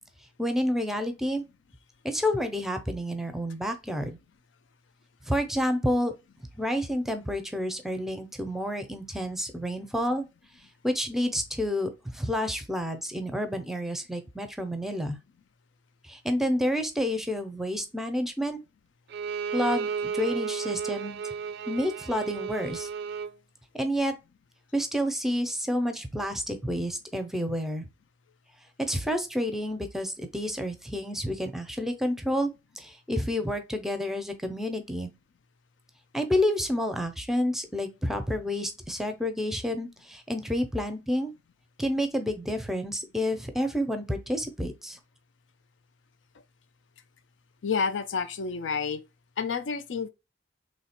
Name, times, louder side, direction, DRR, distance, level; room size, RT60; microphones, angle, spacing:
voice 1, 0.4-1.4 2.0-4.2 5.2-6.1 6.6-10.2 10.8-15.2 16.0-18.6 19.5-21.2 21.7-22.9 23.7-24.1 24.7-27.9 28.8-32.5 32.8-35.1 36.1-41.3 41.8-45.0, equal, ahead, 0.6 m, -29 dB
Bowed string instrument, 19.1-23.4, right 6 dB, 65° right, 0.3 m, -33 dB
voice 2, 47.6-49.0 49.4-50.1, left 5 dB, 75° left, 0.5 m, -29 dB
3.2 x 2.3 x 4.3 m
head